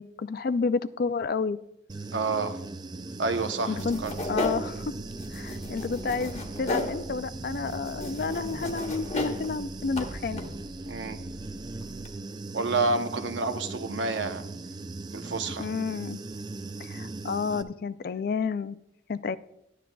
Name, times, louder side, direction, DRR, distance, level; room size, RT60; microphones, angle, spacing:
voice 1, 0.0-1.6 3.7-4.0 4.3-4.9 5.3-10.4 15.6-16.2 16.8-18.8 19.1-19.4, left 4 dB, 50° left, 15 dB, 0.4 m, -30 dB
Human voice / Buzz, 1.9-17.6, right 3 dB, 25° right, 0.4 m, -39 dB
voice 2, 2.1-2.6 3.2-4.1 10.9-11.2 12.5-14.4 15.1-15.7, right 3 dB, 80° right, 7 dB, 0.8 m, -29 dB
sound 1, 3.8-12.2, left 1 dB, 35° left, 1.1 m, -36 dB
12.0 x 10.0 x 2.3 m, 0.85 s
head